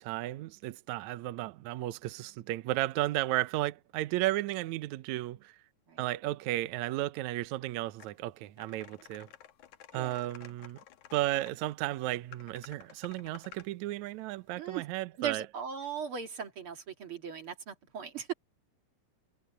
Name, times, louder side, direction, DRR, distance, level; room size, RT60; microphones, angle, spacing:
voice 1, 0.0-5.6 6.0-9.3 9.9-10.8 11.1-15.5, right 16 dB, 75° right, 1.7 m, -34 dB
sound 1, 8.0-8.1 8.6-11.5 12.3-13.7, left 10 dB, 60° left, 2.5 m, -53 dB
voice 2, 9.9-10.3 14.6-14.9 15.2-18.3, right 7 dB, 40° right, 2.4 m, -39 dB
omnidirectional pair, 4.3 m